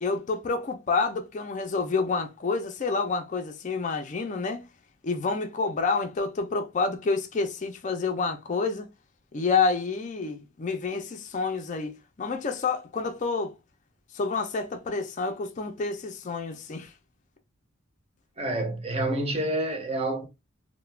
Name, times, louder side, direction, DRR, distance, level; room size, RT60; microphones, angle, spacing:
voice 1, 0.0-4.6 5.0-8.9 9.3-11.9 12.2-13.5 14.1-16.9, left 4 dB, 35° left, 0.4 m, -28 dB
voice 2, 18.4-20.3, right 1 dB, 30° right, 0.6 m, -28 dB
2.3 x 2.1 x 3.1 m
head